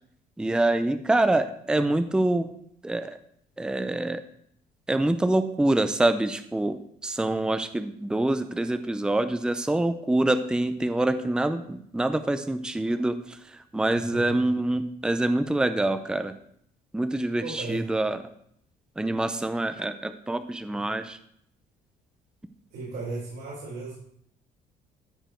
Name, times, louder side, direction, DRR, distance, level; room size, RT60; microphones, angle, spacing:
voice 1, 0.4-2.5 2.8-3.2 3.6-4.2 4.9-16.3 16.9-18.2 19.0-21.2, right 2 dB, 5° right, 10 dB, 0.5 m, -26 dB
voice 2, 13.9-14.4 17.4-17.8 22.7-23.9, right 3 dB, 75° right, -7 dB, 4.6 m, -35 dB
13.5 x 5.0 x 4.5 m, 0.69 s
cardioid pair, 110°, 17 cm